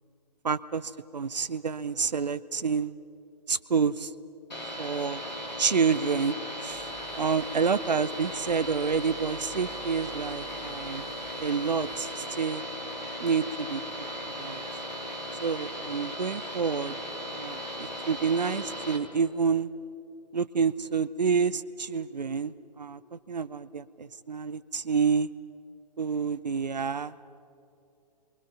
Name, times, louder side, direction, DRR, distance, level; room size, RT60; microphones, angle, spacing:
voice 1, 0.4-2.9 3.5-4.1 4.8-5.2 5.6-6.4 6.6-6.9 7.2-11.0 11.4-12.6 13.2-14.1 14.4-14.6 15.4-16.9 17.3-19.7 20.3-23.0 23.3-25.3 26.0-27.1, right 5 dB, 80° right, 15 dB, 0.8 m, -28 dB
sound 1, 4.5-19.0, equal, 85° left, 3.2 m, -37 dB
sound 2, 6.7-12.0, right 2 dB, 10° right, 3.4 m, -51 dB
28.5 x 23.0 x 5.7 m, 2.6 s
figure-of-eight pair, 120°, 21 cm